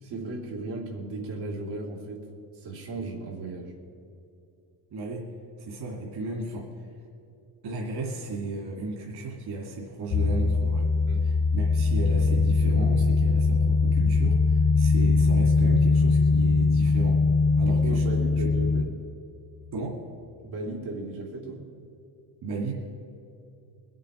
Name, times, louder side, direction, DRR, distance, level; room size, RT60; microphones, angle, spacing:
voice 1, 0.0-2.3 2.5-3.7 11.1-11.3 17.6-19.0 20.4-21.6, right 2 dB, 90° right, -3 dB, 3.2 m, -35 dB
voice 2, 4.9-5.3 5.6-6.9 7.6-10.9 11.2-17.2 17.6-18.0 19.7-20.0 22.4-22.7, right 3 dB, 60° right, -1 dB, 2.6 m, -34 dB
sound 1, 10.1-18.8, left 4 dB, 40° left, 0.4 m, -21 dB
21.0 x 8.2 x 5.1 m, 2.7 s
cardioid pair, 110°, 43 cm